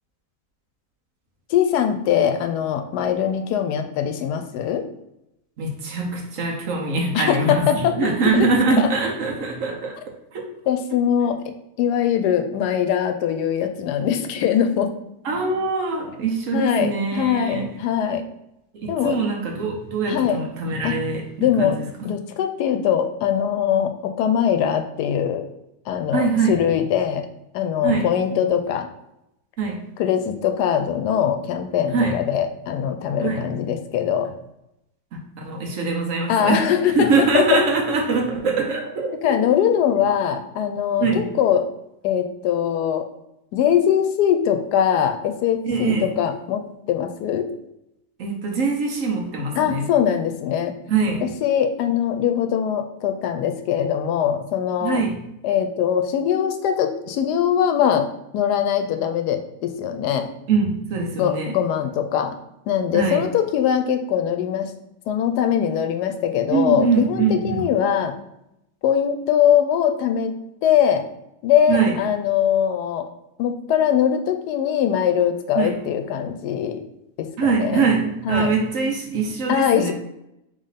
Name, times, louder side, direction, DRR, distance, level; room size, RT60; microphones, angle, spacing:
voice 1, 1.5-4.8 7.1-8.5 8.8-8.9 10.7-11.4 11.8-14.9 16.5-18.2 18.9-19.2 20.1-20.4 20.8-21.0 21.4-21.8 22.0-25.5 25.9-27.3 27.5-28.9 30.0-34.3 36.3-37.1 37.3-37.6 39.2-41.7 42.0-43.0 43.5-47.5 49.6-50.7 51.2-55.0 55.4-58.1 58.3-60.3 61.2-62.3 62.7-64.7 65.1-68.1 68.8-70.3 70.6-71.1 71.4-73.1 73.4-76.8 77.2-77.8 78.2-78.5 79.5-79.9, left 9 dB, 85° left, 7 dB, 1.1 m, -21 dB
voice 2, 5.6-10.0 10.3-10.4 15.2-17.7 18.7-21.9 26.1-26.6 27.8-28.1 29.6-29.8 31.9-32.2 33.2-33.5 35.4-36.6 36.9-39.3 41.0-41.2 45.6-46.0 48.2-49.9 50.9-51.2 54.8-55.2 60.5-61.5 62.9-63.2 66.5-67.7 71.7-72.0 75.5-75.7 77.4-79.9, right 4 dB, 60° right, 1 dB, 1.1 m, -23 dB
4.0 x 3.2 x 4.0 m, 0.84 s
omnidirectional pair, 1.7 m